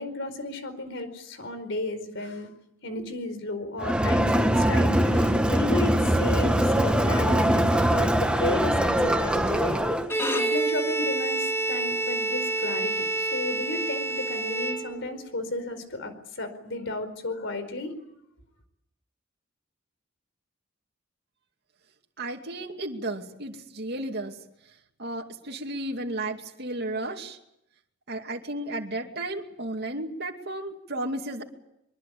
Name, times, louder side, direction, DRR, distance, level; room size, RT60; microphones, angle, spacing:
voice 1, 0.0-2.5 2.8-9.8 10.3-17.9, left 2 dB, 65° left, 10 dB, 4.7 m, -33 dB
Crowd, 3.8-10.1, equal, 5° right, 1.7 m, -22 dB
Bowed string instrument, 10.0-15.3, right 2 dB, 15° left, 3.1 m, -28 dB
voice 2, 22.2-24.4 25.0-27.4 28.1-31.4, right 1 dB, 55° right, 2 dB, 2.5 m, -33 dB
24.0 x 23.0 x 8.5 m, 0.79 s
head